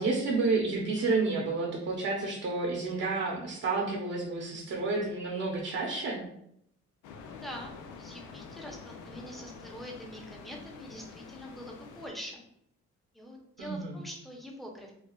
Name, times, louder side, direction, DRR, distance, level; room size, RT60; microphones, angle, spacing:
voice 1, 0.0-6.2 13.6-14.0, right 3 dB, 55° right, -2 dB, 0.9 m, -30 dB
sound 1, 7.0-12.1, left 5 dB, 85° left, 0.5 m, -47 dB
voice 2, 7.4-12.4 13.1-14.9, equal, ahead, 0 dB, 0.8 m, -44 dB
4.6 x 2.3 x 2.4 m, 0.74 s
cardioid pair, 90°, 30 cm